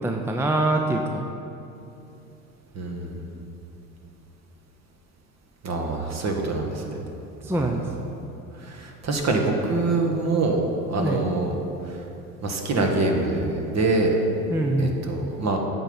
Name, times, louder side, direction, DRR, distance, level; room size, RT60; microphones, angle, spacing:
voice 1, 0.0-1.3 7.4-7.8 11.0-11.2 14.5-15.0, right 2 dB, 5° right, 3 dB, 0.5 m, -24 dB
voice 2, 2.7-3.2 5.6-7.0 7.5-7.7 8.6-11.5 11.9-12.0 12.4-14.1 14.8-15.6, right 2 dB, 40° right, 2 dB, 1.4 m, -25 dB
8.9 x 4.0 x 7.1 m, 2.8 s
hypercardioid pair, 70°, 40 cm